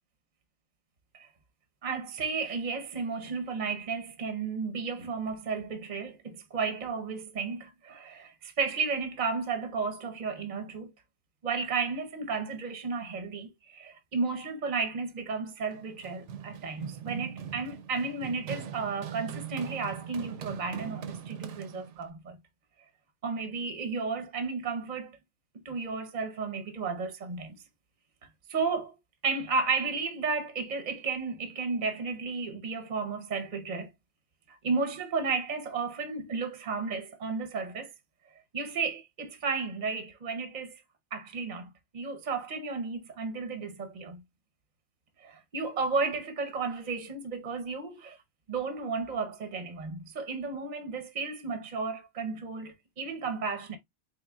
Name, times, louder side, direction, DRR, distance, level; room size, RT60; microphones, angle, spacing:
voice 1, 1.8-10.9 11.4-22.4 23.2-25.2 25.6-27.5 28.5-29.0 29.2-33.9 34.5-37.9 38.5-40.7 41.1-44.2 45.2-48.2 48.5-53.8, right 4 dB, 40° right, 0.8 m, -33 dB
Run, 15.7-22.1, right 8 dB, 75° right, 1.0 m, -41 dB
4.6 x 3.2 x 2.2 m
omnidirectional pair, 1.2 m